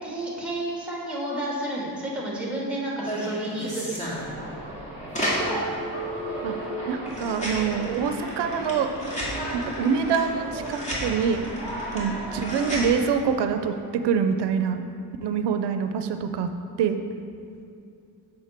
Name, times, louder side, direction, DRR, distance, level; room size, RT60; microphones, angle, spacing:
voice 1, 0.0-4.0, right 1 dB, 5° right, -4 dB, 1.9 m, -31 dB
sound 1, 3.1-12.9, equal, 15° left, 2.0 m, -31 dB
voice 2, 6.9-8.9 9.5-11.4 11.9-14.8 15.2-16.5 16.8-17.0, right 6 dB, 90° right, 8 dB, 0.5 m, -25 dB
7.4 x 6.3 x 4.3 m, 2.5 s
cardioid pair, 115°, 40 cm